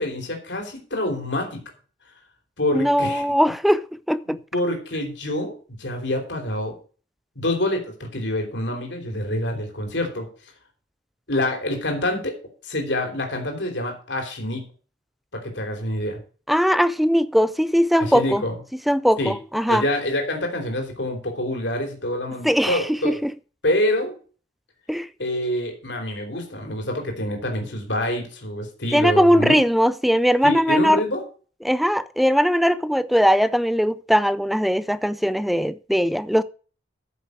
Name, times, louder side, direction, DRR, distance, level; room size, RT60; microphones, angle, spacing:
voice 1, 0.0-1.6 2.6-3.2 4.3-6.7 7.3-10.3 11.3-12.3 12.6-14.6 15.3-16.2 18.0-18.5 19.2-19.3 19.7-23.1 23.6-24.2 25.2-29.6 30.4-31.2, left 1 dB, 70° left, 3.2 m, -26 dB
voice 2, 2.7-4.4 16.5-18.4 18.9-19.8 22.4-23.3 24.9-25.1 28.9-31.0 31.6-36.4, equal, ahead, 0.4 m, -20 dB
9.3 x 6.9 x 6.2 m
head